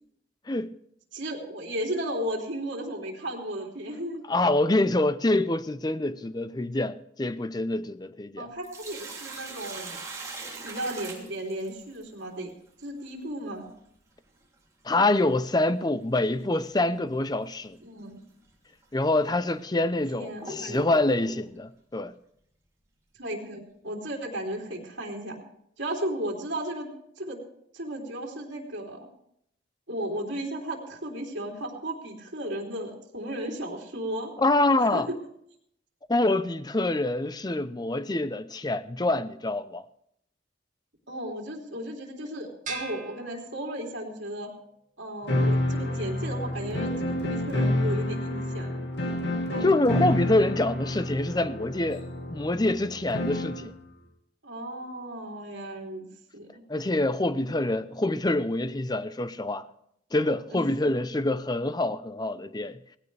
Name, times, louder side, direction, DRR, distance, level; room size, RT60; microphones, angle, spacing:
voice 1, 1.1-4.2 8.4-10.0 10.6-12.5 12.8-13.7 17.8-18.2 20.2-20.8 23.2-25.4 25.8-27.4 27.7-29.1 29.9-34.3 34.8-35.1 41.1-44.5 45.0-48.8 49.5-49.7 54.4-56.1 56.3-56.6 60.5-60.6, right 1 dB, 70° right, 3.2 m, -35 dB
voice 2, 4.3-8.5 14.8-17.8 18.9-22.1 34.4-35.1 36.1-39.8 49.6-52.0 52.3-53.7 56.7-59.7 60.1-62.8, left 2 dB, 20° left, 0.6 m, -26 dB
Sink (filling or washing), 8.4-12.0 14.4-14.5 16.4-16.6 17.1-17.2 18.0-18.1 18.8-18.9 19.6-21.5, right 2 dB, 15° right, 3.0 m, -41 dB
sound 1, 42.6-44.1, right 4 dB, 40° right, 2.1 m, -40 dB
sound 2, 45.3-53.7, left 1 dB, 65° left, 2.2 m, -29 dB
18.5 x 16.0 x 3.4 m
head